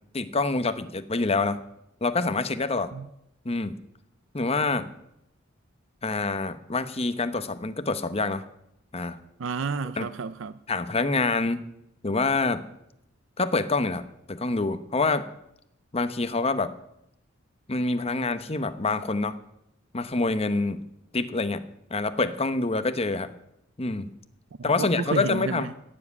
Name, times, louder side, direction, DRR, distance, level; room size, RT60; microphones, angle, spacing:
voice 1, 0.1-1.6 2.0-2.9 3.4-3.7 4.3-4.9 6.0-8.4 8.9-9.2 10.0-10.1 10.7-11.6 12.0-12.6 13.4-14.0 14.3-15.3 15.9-16.7 17.7-19.4 19.9-20.8 21.1-21.6 21.9-23.3 23.8-24.1 24.6-25.7, left 3 dB, 30° left, 0.9 m, -26 dB
voice 2, 9.4-10.6 24.6-25.7, right 5 dB, 70° right, 0.5 m, -31 dB
17.0 x 7.5 x 9.7 m
head